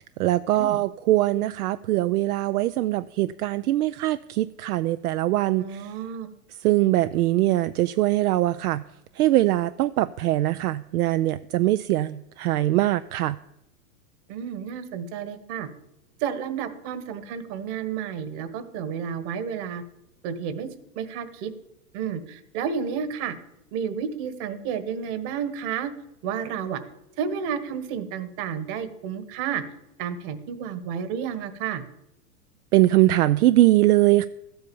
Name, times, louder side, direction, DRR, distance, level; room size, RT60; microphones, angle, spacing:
voice 1, 0.2-5.9 6.6-8.8 9.1-13.4 32.7-34.2, right 16 dB, 75° right, 13 dB, 0.6 m, -22 dB
voice 2, 5.6-6.3 14.3-15.7 16.2-19.8 20.2-20.7 20.9-21.5 21.9-23.4 23.7-25.9 26.2-26.8 27.2-29.6 30.0-31.8, right 7 dB, 45° right, 12 dB, 1.5 m, -31 dB
13.5 x 8.0 x 7.0 m, 0.86 s
hypercardioid pair, 120°, 46 cm